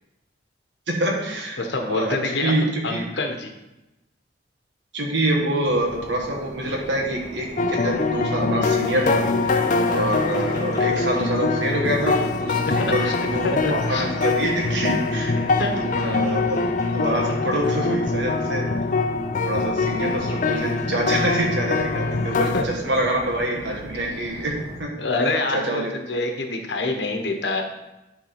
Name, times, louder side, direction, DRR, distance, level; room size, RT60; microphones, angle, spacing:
voice 1, 0.9-1.6 1.9-3.0 4.9-9.3 9.9-16.7 16.9-18.7 19.5-24.9 25.5-25.9, right 1 dB, 90° right, 0 dB, 1.3 m, -26 dB
voice 2, 1.6-3.5 12.6-13.1 13.4-14.1 15.6-15.8 22.5-22.7 25.0-27.6, left 2 dB, 75° left, 4 dB, 1.1 m, -26 dB
sound 1, 5.6-24.8, equal, 15° right, 1.9 m, -39 dB
sound 2, 7.6-22.6, left 3 dB, 45° left, 0.6 m, -23 dB
10.5 x 3.6 x 5.8 m, 0.99 s
head